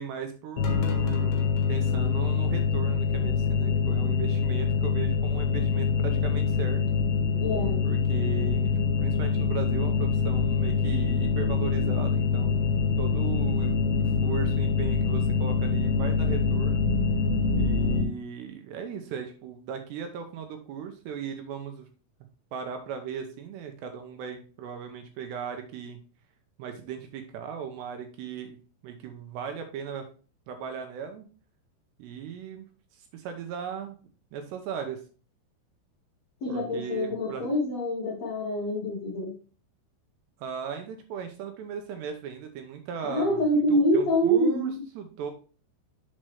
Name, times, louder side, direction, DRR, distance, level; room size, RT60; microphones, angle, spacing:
voice 1, 0.0-7.0 7.8-12.7 13.0-16.8 17.6-21.9 22.5-26.0 26.6-28.6 28.8-30.1 30.5-31.3 32.0-32.7 32.9-34.0 34.3-35.0 36.5-37.4 40.4-45.3, right 7 dB, 75° right, 5 dB, 2.6 m, -37 dB
sound 1, 0.6-18.0, left 5 dB, 65° left, 3.1 m, -25 dB
voice 2, 7.3-7.8 36.4-39.3 43.0-44.8, equal, 85° left, -3 dB, 1.5 m, -26 dB
7.5 x 6.0 x 3.3 m, 0.38 s
omnidirectional pair, 5.6 m